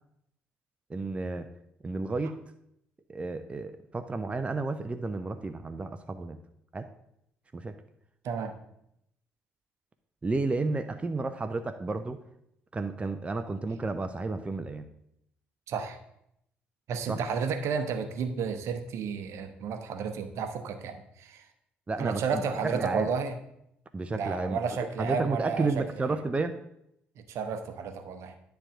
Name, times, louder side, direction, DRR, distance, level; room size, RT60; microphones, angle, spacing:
voice 1, 0.9-1.5 1.8-2.4 3.1-6.4 6.7-6.9 7.5-7.8 10.2-12.2 12.7-14.8 17.1-17.2 21.9-23.1 23.9-24.6 25.0-26.6, right 3 dB, 20° right, 8 dB, 0.6 m, -31 dB
voice 2, 8.2-8.6 15.7-16.0 16.9-21.5 22.0-23.4 24.1-25.8 27.2-28.4, right 6 dB, 55° right, 8 dB, 0.9 m, -32 dB
10.0 x 3.5 x 6.2 m, 0.78 s
figure-of-eight pair, 45°, 6 cm